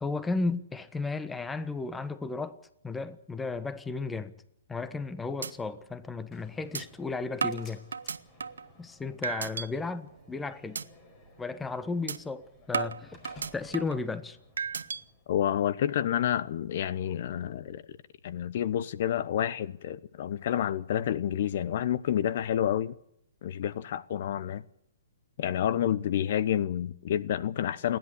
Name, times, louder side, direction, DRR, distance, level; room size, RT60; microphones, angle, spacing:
voice 1, 0.0-2.6 2.8-4.3 4.7-7.8 8.8-10.8 11.4-13.2 13.5-14.4, left 3 dB, 10° left, 1.2 m, -34 dB
sound 1, 4.8-5.1 5.4-5.5 5.9-6.0 6.7-6.8 7.4-8.7 9.2-9.7 10.1-10.3 10.7-10.9 11.3-11.4 12.1-12.2 12.7-14.0 14.6-15.0, right 5 dB, 85° right, 1.0 m, -33 dB
Slam, 6.3-15.3, left 3 dB, 25° left, 5.0 m, -56 dB
voice 2, 15.3-18.0 18.2-22.9 23.4-24.6 25.4-28.0, left 10 dB, 55° left, 0.9 m, -29 dB
28.5 x 11.0 x 9.9 m
hypercardioid pair, 135°, 0 cm